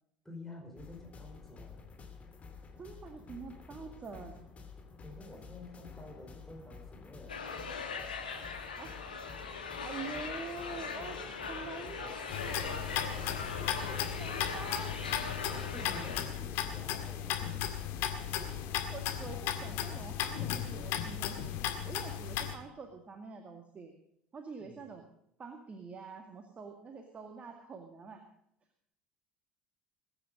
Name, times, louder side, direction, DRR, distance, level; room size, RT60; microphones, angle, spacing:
voice 1, 0.2-1.9 5.0-7.6 13.9-14.2 15.5-17.4 24.6-24.9, left 2 dB, 5° left, 0 dB, 4.9 m, -50 dB
sound 1, 0.8-20.1, left 5 dB, 30° left, 3.0 m, -50 dB
voice 2, 2.8-4.4 8.8-8.9 9.8-11.2 11.5-12.9 13.6-15.0 15.5-15.6 18.4-18.5 18.9-21.4 21.8-23.9 24.3-25.0 25.4-28.2, right 4 dB, 30° right, 5 dB, 2.1 m, -46 dB
sound 2, 7.3-16.2, left 5 dB, 80° left, 2.1 m, -40 dB
sound 3, 12.3-22.5, left 10 dB, 55° left, 1.9 m, -36 dB
21.5 x 9.5 x 5.2 m, 0.73 s
figure-of-eight pair, 65°, 5 cm